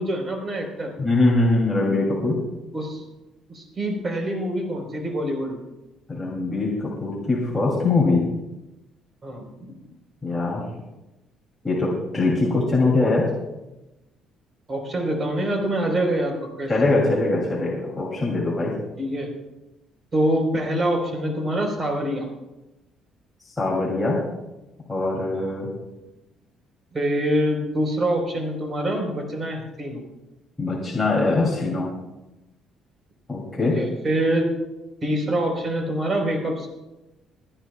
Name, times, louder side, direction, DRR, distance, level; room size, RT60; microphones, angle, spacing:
voice 1, 0.0-0.9 2.7-3.0 3.5-5.6 9.2-9.7 14.7-16.7 19.0-19.3 20.1-22.3 25.3-25.5 26.9-30.0 33.6-34.5 35.0-36.7, right 1 dB, 30° right, 2 dB, 4.1 m, -25 dB
voice 2, 1.0-2.3 6.1-8.2 10.2-10.6 11.6-13.3 16.7-18.7 23.6-24.2 24.9-25.7 30.6-31.9 33.3-33.7, left 2 dB, 10° left, -5 dB, 2.8 m, -22 dB
29.0 x 9.8 x 2.3 m, 1.0 s
cardioid pair, 130°, 0 cm